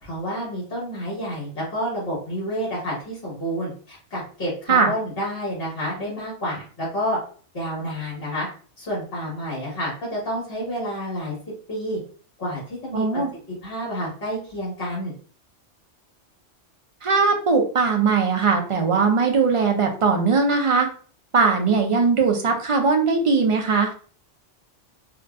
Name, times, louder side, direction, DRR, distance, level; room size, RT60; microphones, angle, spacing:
voice 1, 0.0-7.2 7.5-8.5 8.8-11.4 11.7-12.0 12.4-13.2 13.6-15.1, equal, 55° left, -6 dB, 1.6 m, -29 dB
voice 2, 12.9-13.3 17.0-20.9 21.3-23.9, right 4 dB, 55° right, 3 dB, 0.3 m, -20 dB
3.7 x 2.2 x 2.3 m, 0.41 s
omnidirectional pair, 1.2 m